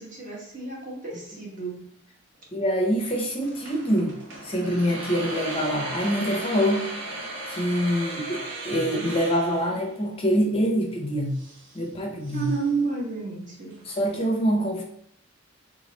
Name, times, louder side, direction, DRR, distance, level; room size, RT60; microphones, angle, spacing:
voice 1, 0.0-1.8 12.3-13.7, right 4 dB, 40° right, -3 dB, 1.2 m, -31 dB
voice 2, 2.5-4.2 4.4-6.9 7.5-11.4 11.7-12.5 13.9-14.8, equal, 25° left, 0 dB, 0.6 m, -25 dB
sound 1, 3.0-14.1, right 2 dB, 60° right, 1.2 m, -38 dB
3.5 x 3.4 x 3.8 m, 0.69 s
head